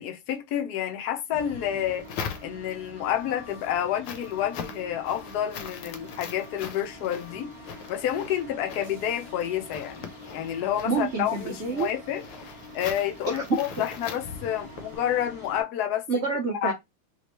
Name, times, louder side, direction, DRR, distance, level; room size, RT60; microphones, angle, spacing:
voice 1, 0.0-2.1 2.4-7.5 7.9-12.2 12.7-16.0 16.6-16.7, left 10 dB, 65° left, 1.1 m, -29 dB
sound 1, 1.3-15.6, equal, 20° right, 0.8 m, -45 dB
sound 2, 1.5-2.9 3.4-15.0, left 7 dB, 85° left, 1.5 m, -41 dB
voice 2, 10.9-11.9 13.3-13.6 16.1-16.7, right 4 dB, 75° right, 0.6 m, -27 dB
3.3 x 3.2 x 2.9 m
omnidirectional pair, 2.3 m